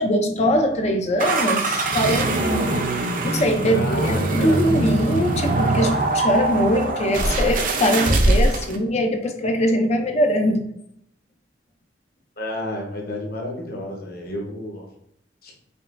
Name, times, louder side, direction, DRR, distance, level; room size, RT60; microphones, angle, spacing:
voice 1, 0.0-2.8 3.2-10.6, equal, 40° left, 5 dB, 0.4 m, -22 dB
sound 1, 1.2-8.8, right 2 dB, 50° right, 0.5 m, -22 dB
voice 2, 3.6-4.6 12.4-14.9 15.4-15.5, left 1 dB, 55° left, 0 dB, 1.1 m, -31 dB
5.2 x 3.0 x 2.5 m, 0.74 s
head